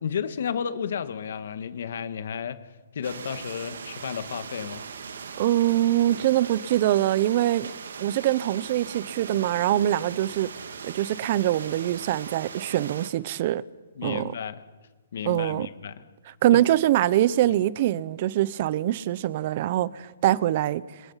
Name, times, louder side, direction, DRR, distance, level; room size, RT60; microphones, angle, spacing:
voice 1, 0.0-2.6 2.9-4.9 14.0-14.6 15.1-15.9 16.5-16.6 17.5-17.6, left 7 dB, 60° left, 1.9 m, -32 dB
sound 1, 3.0-13.1, right 6 dB, 75° right, 2.4 m, -40 dB
voice 2, 5.4-7.7 8.0-10.5 10.8-13.6 14.0-14.3 15.2-15.7 16.3-20.8, right 13 dB, 40° right, 0.8 m, -23 dB
30.0 x 27.0 x 5.8 m
hypercardioid pair, 165°, 0 cm